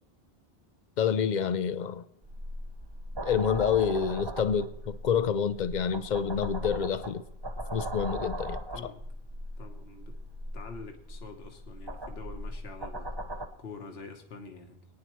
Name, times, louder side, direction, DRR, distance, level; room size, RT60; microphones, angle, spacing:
voice 1, 1.0-2.0 3.2-7.2 7.7-8.9, left 7 dB, 55° left, 0.6 m, -28 dB
sound 1, 2.2-13.5, equal, 25° right, 0.8 m, -38 dB
voice 2, 9.6-10.1 10.5-13.1 13.6-14.8, left 4 dB, 70° left, 1.3 m, -46 dB
23.5 x 9.6 x 3.0 m
omnidirectional pair, 1.1 m